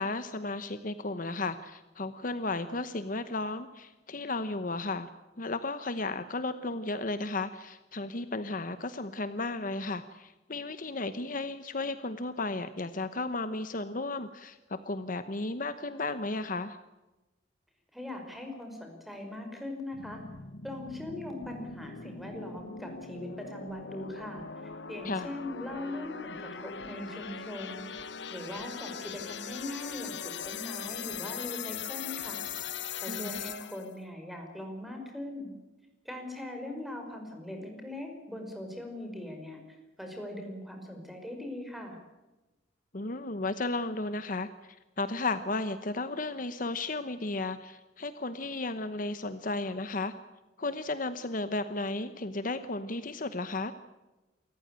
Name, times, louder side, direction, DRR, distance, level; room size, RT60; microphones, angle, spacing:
voice 1, 0.0-5.1 5.4-16.8 25.0-25.3 33.1-33.4 42.9-50.1 50.6-53.7, left 2 dB, 45° left, 11 dB, 1.0 m, -34 dB
voice 2, 17.9-20.2 20.6-32.5 33.0-35.5 36.1-42.0, left 1 dB, ahead, 3 dB, 5.4 m, -41 dB
sound 1, 19.9-33.9, left 6 dB, 70° left, 1.3 m, -40 dB
28.0 x 14.5 x 9.0 m, 1.1 s
head